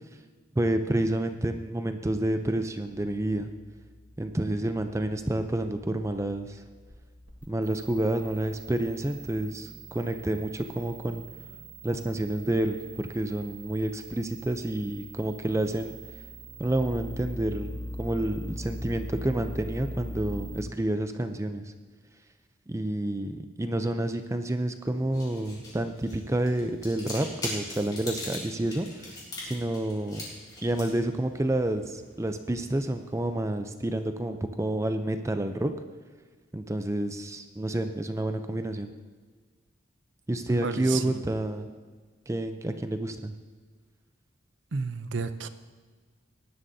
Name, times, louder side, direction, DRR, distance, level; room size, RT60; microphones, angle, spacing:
voice 1, 0.6-3.5 4.2-6.6 7.5-11.2 11.8-15.9 16.6-21.6 22.7-29.1 29.4-30.2 30.6-35.7 36.5-38.9 40.3-41.7 42.3-43.3, right 1 dB, 15° right, 8 dB, 0.5 m, -29 dB
sound 1, 2.7-20.6, equal, 85° right, 3.1 m, -42 dB
sound 2, 24.9-33.3, left 1 dB, 20° left, 3.4 m, -42 dB
voice 2, 40.5-41.2 44.7-45.5, right 4 dB, 65° right, 11 dB, 0.6 m, -32 dB
19.0 x 11.0 x 2.7 m, 1.5 s
head